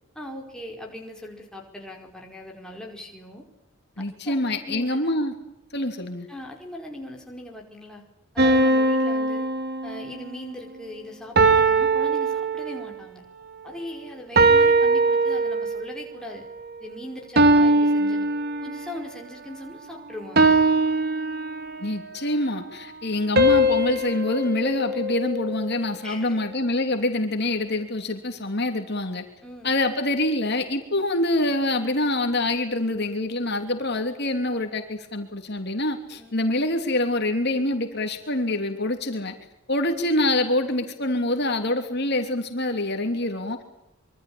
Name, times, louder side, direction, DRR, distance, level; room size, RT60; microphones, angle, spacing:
voice 1, 0.1-3.5 4.2-5.0 6.3-8.0 8.3-9.5 9.8-13.2 13.6-16.5 16.8-18.3 18.6-20.6 26.0-26.4 29.4-29.7 36.2-36.3, left 1 dB, 5° left, 0 dB, 4.9 m, -39 dB
voice 2, 4.0-5.3 5.7-6.3 21.8-29.2 29.6-39.3 39.7-43.6, left 1 dB, 50° left, 4 dB, 3.1 m, -25 dB
sound 1, 8.4-10.3 11.4-13.0 14.4-15.9 17.4-19.0 20.4-22.0 23.4-25.7, right 2 dB, 45° right, 2.4 m, -21 dB
25.5 x 24.5 x 8.7 m, 0.87 s
head